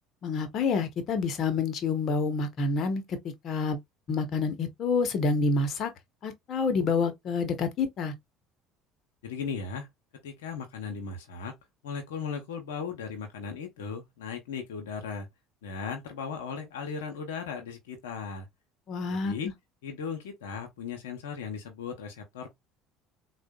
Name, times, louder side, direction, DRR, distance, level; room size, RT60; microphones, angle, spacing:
voice 1, 0.2-3.0 3.4-3.8 4.1-5.9 6.2-8.1 18.9-19.3, left 4 dB, 55° left, 1.0 m, -28 dB
voice 2, 9.2-9.9 10.2-11.5 11.8-15.3 15.6-18.5 19.1-19.5 19.8-22.5, left 6 dB, 90° left, 0.7 m, -37 dB
3.7 x 2.4 x 2.2 m
hypercardioid pair, 80°, 0 cm